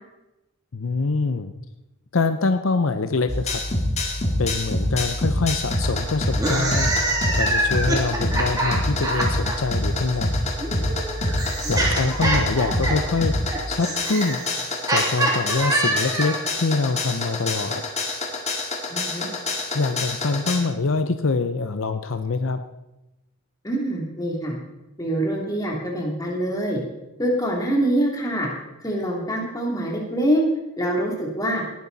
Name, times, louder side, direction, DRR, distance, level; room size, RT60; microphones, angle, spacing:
voice 1, 0.7-1.5 2.1-3.6 4.4-6.9 7.3-10.5 11.7-13.4 13.7-17.8 19.3-22.6, left 3 dB, 70° left, 10 dB, 0.7 m, -25 dB
sound 1, 3.3-20.6, left 1 dB, 35° left, 2.1 m, -26 dB
sound 2, 6.3-9.5 10.6-16.5, right 2 dB, 15° right, 2.7 m, -25 dB
voice 2, 18.9-19.3 23.6-24.6 25.0-26.8 27.2-28.5 28.8-30.4 30.8-31.6, right 1 dB, 15° left, -2 dB, 3.0 m, -24 dB
19.0 x 10.5 x 4.1 m, 0.98 s
head